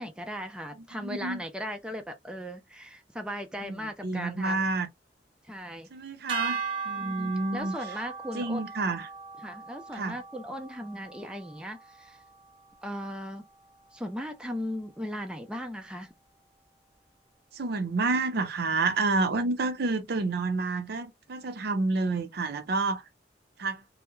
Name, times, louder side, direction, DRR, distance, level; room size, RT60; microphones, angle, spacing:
voice 1, 0.0-4.6 5.4-5.9 7.0-8.6 9.4-12.2 12.8-13.4 13.9-16.1, equal, 5° right, 0.4 m, -37 dB
voice 2, 0.9-1.4 3.6-3.8 4.0-4.9 5.9-7.8 8.3-9.1 9.9-10.2 17.5-23.0 23.6-23.8, right 3 dB, 60° right, 0.5 m, -29 dB
sound 1, 6.3-12.6, right 5 dB, 30° right, 0.7 m, -38 dB
2.3 x 2.0 x 2.9 m
head